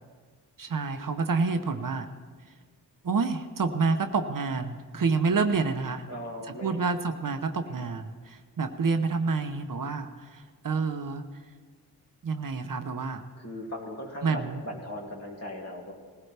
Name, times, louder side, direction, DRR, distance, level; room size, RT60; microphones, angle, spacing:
voice 1, 0.6-2.1 3.0-6.0 6.6-11.2 12.2-13.2 14.2-14.6, right 4 dB, 55° right, 7 dB, 0.9 m, -28 dB
voice 2, 6.1-6.8 7.7-7.9 13.4-15.9, left 1 dB, 40° left, -1 dB, 2.7 m, -38 dB
19.5 x 16.0 x 3.4 m, 1.5 s
wide cardioid pair, 105°, 39 cm